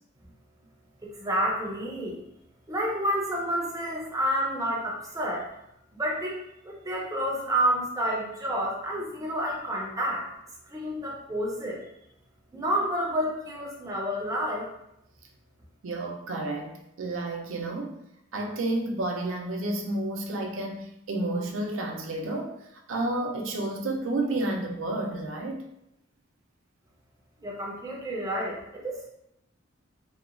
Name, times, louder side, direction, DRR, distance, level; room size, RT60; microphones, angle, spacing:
voice 1, 1.0-2.2 2.7-5.5 5.9-10.3 10.7-11.8 12.5-14.7 27.4-29.0, equal, 15° right, -3 dB, 0.5 m, -29 dB
voice 2, 15.8-18.0 18.3-22.6 22.9-25.6, right 2 dB, 75° right, 2 dB, 0.4 m, -31 dB
2.8 x 2.2 x 2.4 m, 0.81 s
head